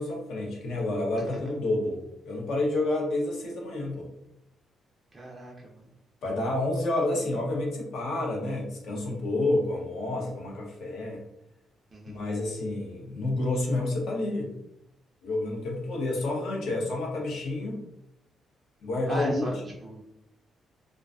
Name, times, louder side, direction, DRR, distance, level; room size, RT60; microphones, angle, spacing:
voice 1, 0.0-4.1 6.2-11.2 12.1-14.5 15.2-17.8 18.8-19.5, left 2 dB, 75° left, 0 dB, 0.6 m, -29 dB
voice 2, 1.2-1.5 5.1-5.9 11.9-12.2 19.1-19.5 19.8-20.0, right 1 dB, 20° right, -3 dB, 0.4 m, -39 dB
2.4 x 2.3 x 2.3 m, 0.83 s
cardioid pair, 165°, 0 cm